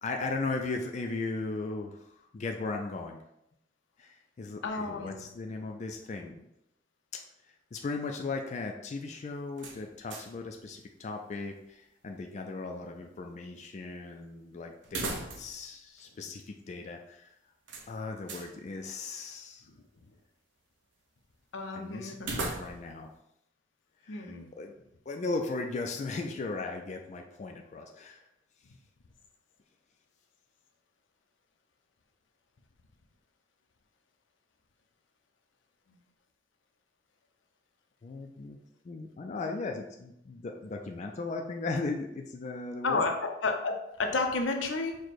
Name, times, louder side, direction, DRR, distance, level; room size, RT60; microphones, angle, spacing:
voice 1, 0.0-3.2 4.0-6.5 7.7-17.3 17.9-19.7 21.7-23.1 24.0-24.7 25.1-28.3 38.0-43.0, left 3 dB, 40° left, 3 dB, 0.4 m, -37 dB
voice 2, 4.6-5.2 21.5-22.4 24.1-24.5 42.8-45.0, left 3 dB, 85° left, 3 dB, 0.6 m, -31 dB
sound 1, 9.6-10.5 10.8-10.9 14.8-15.7 16.0-16.1 17.7-18.5 22.2-23.0, right 2 dB, 70° right, 0.7 m, -38 dB
4.8 x 2.2 x 4.1 m, 0.81 s
head